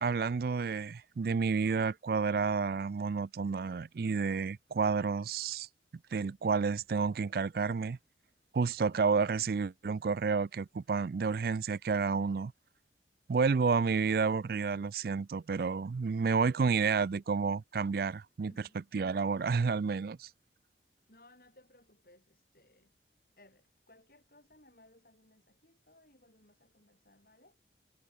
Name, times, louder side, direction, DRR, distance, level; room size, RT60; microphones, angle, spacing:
voice 1, 0.0-5.7 6.1-8.0 8.5-12.5 13.3-20.3, right 5 dB, 55° right, 0.4 m, -30 dB
voice 2, 18.4-18.8 21.1-22.9 23.4-27.6, left 1 dB, 50° left, 7.6 m, -62 dB
head